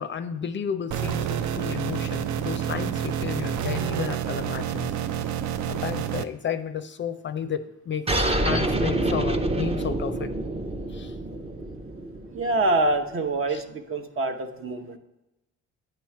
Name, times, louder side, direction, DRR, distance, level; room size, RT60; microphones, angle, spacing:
voice 1, 0.0-4.9 5.7-10.3 10.9-11.2 13.5-13.6, left 7 dB, 40° left, 10 dB, 0.4 m, -32 dB
sound 1, 0.9-6.2, right 9 dB, 70° right, 0.5 m, -28 dB
sound 2, 8.1-13.1, right 1 dB, 20° right, 0.6 m, -27 dB
voice 2, 12.3-15.0, right 2 dB, 45° right, 5 dB, 0.9 m, -25 dB
9.0 x 3.1 x 5.7 m, 0.98 s
cardioid pair, 90°, 30 cm